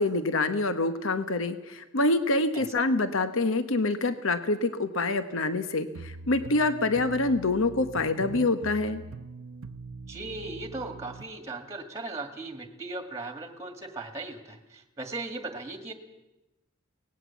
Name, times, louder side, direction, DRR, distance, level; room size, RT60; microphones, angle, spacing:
voice 1, 0.0-9.0, left 2 dB, 65° left, 10 dB, 1.1 m, -26 dB
sound 1, 5.9-11.3, right 4 dB, 70° right, 0.7 m, -43 dB
voice 2, 10.0-15.9, right 2 dB, 15° right, 6 dB, 2.0 m, -38 dB
24.0 x 18.5 x 7.2 m, 1.0 s
head